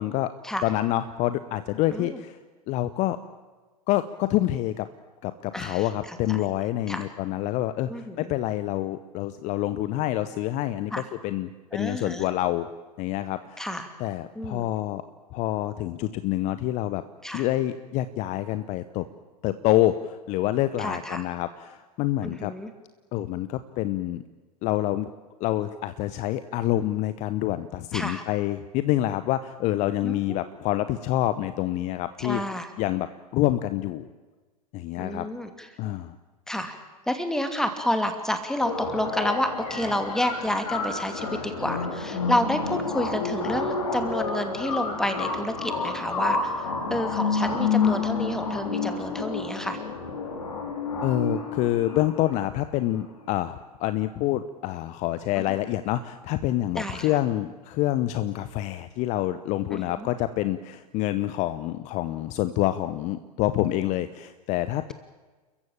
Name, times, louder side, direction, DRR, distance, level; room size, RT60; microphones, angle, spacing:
voice 1, 0.6-2.4 2.7-3.2 3.9-4.9 5.2-10.9 11.2-12.7 13.0-13.7 14.0-15.0 15.3-17.0 17.3-19.1 19.4-22.5 23.1-24.2 24.6-25.1 25.4-32.4 32.8-34.1 34.7-35.3 35.8-36.2 51.0-64.9, left 14 dB, 35° left, 13 dB, 0.9 m, -27 dB
voice 2, 5.5-6.4 6.9-7.1 7.9-8.3 10.9-11.1 11.7-12.2 13.6-13.9 14.3-14.6 17.2-17.5 20.8-21.3 22.2-22.7 27.9-28.2 30.0-30.4 32.2-32.7 34.9-35.7 36.5-36.7 37.1-49.8 55.4-55.5 56.8-57.1 59.7-60.1, left 1 dB, 5° left, 7 dB, 2.6 m, -30 dB
sound 1, 38.6-52.6, left 4 dB, 65° left, 4.1 m, -29 dB
29.5 x 14.5 x 8.9 m, 1.3 s
figure-of-eight pair, 90°, 20 cm